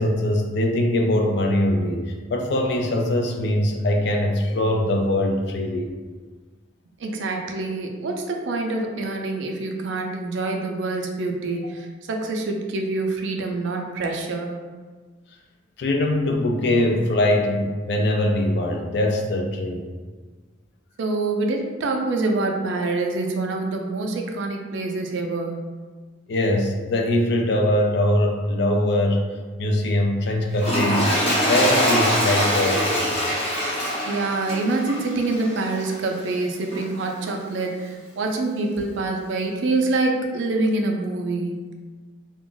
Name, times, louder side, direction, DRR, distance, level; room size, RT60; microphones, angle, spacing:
voice 1, 0.0-5.9 15.8-19.8 26.3-29.2 29.6-33.1, left 1 dB, 60° left, 3 dB, 0.4 m, -22 dB
voice 2, 7.0-14.6 21.0-25.7 34.1-41.6, right 2 dB, 65° right, 2 dB, 0.4 m, -26 dB
Toilet flush, 30.5-36.0 36.7-36.8, equal, 30° left, 0.8 m, -23 dB
2.4 x 2.0 x 3.7 m, 1.4 s
head